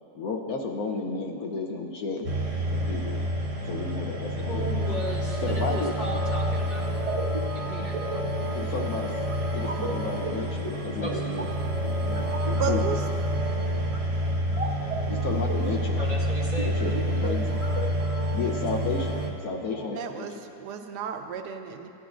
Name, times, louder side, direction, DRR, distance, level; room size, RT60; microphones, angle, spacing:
voice 1, 0.1-2.3 2.7-3.2 3.7-5.0 5.4-5.9 8.5-9.1 9.5-11.5 11.7-12.4 12.6-12.8 15.1-16.0 16.6-17.7 18.3-20.3, left 4 dB, 70° left, 2 dB, 1.1 m, -33 dB
sound 1, 2.2-19.3, equal, 35° right, 0.5 m, -28 dB
voice 2, 4.4-6.9 7.5-8.0 11.0-11.2 15.9-16.7 19.6-20.1, equal, 25° left, -6 dB, 2.0 m, -36 dB
voice 3, 12.5-13.0 19.9-21.9, right 7 dB, 85° right, 6 dB, 1.2 m, -33 dB
17.0 x 10.5 x 2.5 m, 2.8 s
omnidirectional pair, 1.8 m